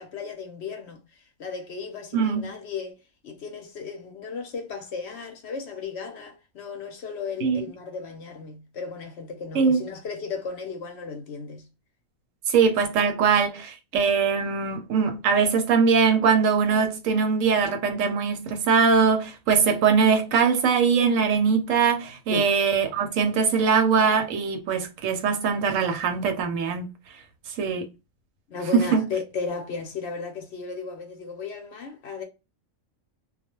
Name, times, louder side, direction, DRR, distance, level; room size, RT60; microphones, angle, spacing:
voice 1, 0.0-11.7 22.3-22.5 23.3-23.5 28.5-32.2, left 4 dB, 60° left, 0.8 m, -35 dB
voice 2, 2.1-2.5 7.4-7.6 9.5-9.8 12.5-26.9 27.6-27.9 28.7-29.0, right 5 dB, 75° right, 1.0 m, -22 dB
2.3 x 2.2 x 2.9 m
omnidirectional pair, 1.4 m